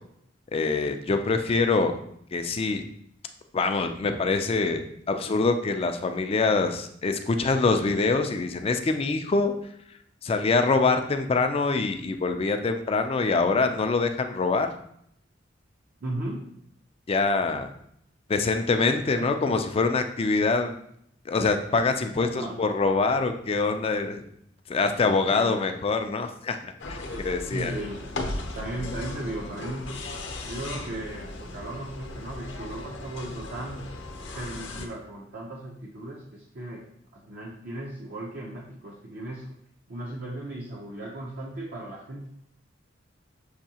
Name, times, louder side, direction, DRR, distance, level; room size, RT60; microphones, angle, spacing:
voice 1, 0.5-1.9 2.3-2.8 3.5-9.5 10.2-14.7 17.1-17.7 18.3-20.8 21.3-24.2 24.7-26.6 26.9-27.7, left 3 dB, 30° left, 7 dB, 0.4 m, -24 dB
voice 2, 16.0-16.5 19.1-19.3 22.1-22.6 25.0-25.6 27.1-29.9 30.4-33.8 34.3-36.9 37.1-39.5 39.9-42.3, right 1 dB, 55° right, -2 dB, 0.7 m, -36 dB
sound 1, 26.8-34.9, left 2 dB, 65° left, 0.7 m, -37 dB
6.5 x 2.7 x 2.8 m, 0.71 s
head